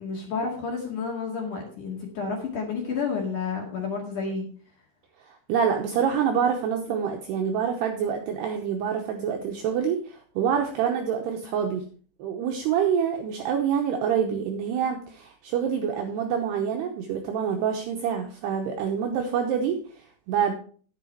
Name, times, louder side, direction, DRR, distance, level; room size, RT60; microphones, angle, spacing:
voice 1, 0.0-4.5, left 5 dB, 55° left, 0 dB, 2.7 m, -30 dB
voice 2, 5.3-11.8 12.2-20.5, right 7 dB, 80° right, 2 dB, 2.4 m, -26 dB
10.5 x 8.4 x 4.5 m, 0.43 s
omnidirectional pair, 5.8 m